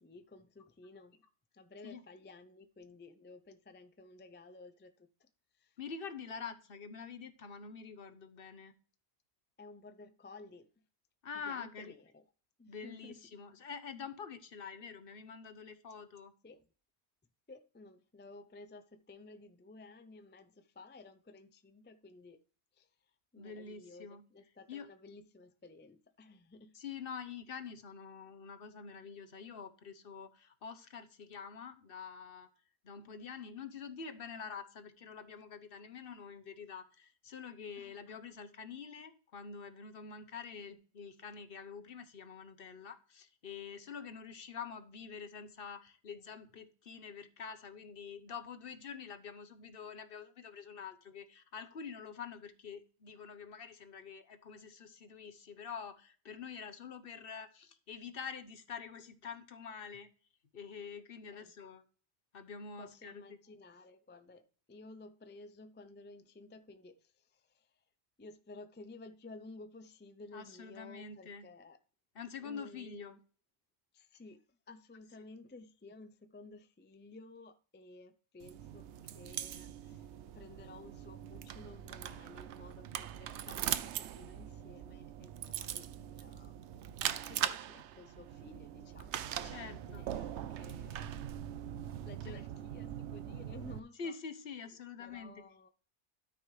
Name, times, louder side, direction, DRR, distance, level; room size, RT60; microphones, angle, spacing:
voice 1, 0.0-1.3 1.5-5.3 5.6-5.7 9.6-10.7 11.4-12.2 12.6-13.2 16.4-16.6 17.5-22.4 22.8-22.9 23.3-26.8 37.7-38.0 61.3-61.5 62.8-67.7 68.2-71.8 72.4-73.2 73.9-78.9 79.1-80.1 80.3-86.9 87.3-91.2 92.0-94.1 95.0-95.7, left 3 dB, 15° left, 0.3 m, -54 dB
voice 2, 5.8-8.7 11.2-12.0 12.7-16.3 23.4-24.2 24.7-24.9 26.7-32.5 32.8-60.1 60.5-61.8 62.3-63.4 70.3-71.5 72.1-73.1 89.4-90.1 92.3-92.4 94.0-95.4, left 6 dB, 60° left, 1.0 m, -46 dB
sound 1, 78.4-93.8, right 10 dB, 90° right, 0.9 m, -41 dB
13.0 x 6.0 x 3.2 m
omnidirectional pair, 1.1 m